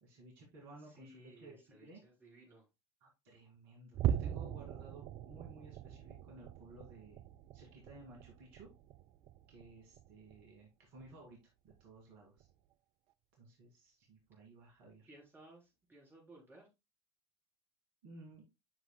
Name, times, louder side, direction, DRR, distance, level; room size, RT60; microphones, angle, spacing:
voice 1, 0.0-2.0 3.0-7.2 7.5-8.7 9.5-12.5 13.4-15.1 18.0-18.5, right 2 dB, 55° right, -1 dB, 2.3 m, -56 dB
voice 2, 0.8-2.7 15.1-16.7, right 2 dB, 15° right, -2 dB, 3.7 m, -59 dB
sound 1, 3.9-10.6 11.0-11.3 11.7-11.8 12.4-12.5, right 10 dB, 40° right, 0.4 m, -41 dB
8.8 x 6.0 x 2.2 m, 0.23 s
figure-of-eight pair, 80°, 15 cm